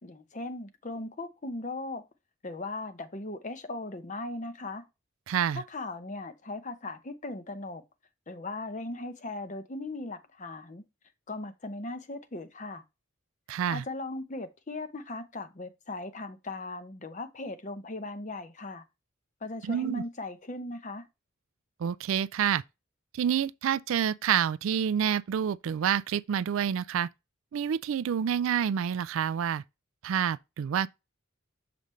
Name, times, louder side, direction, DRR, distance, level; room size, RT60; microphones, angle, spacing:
voice 1, 0.0-2.0 2.4-4.8 5.5-7.8 8.3-10.8 11.3-12.8 13.7-18.8 19.4-21.1, left 2 dB, 35° left, 0.8 m, -38 dB
voice 2, 5.3-5.6 13.5-13.8 19.7-20.0 21.8-22.6 23.1-27.1 27.5-29.6 30.0-30.9, right 8 dB, 70° right, 0.3 m, -28 dB
6.8 x 5.1 x 3.1 m
head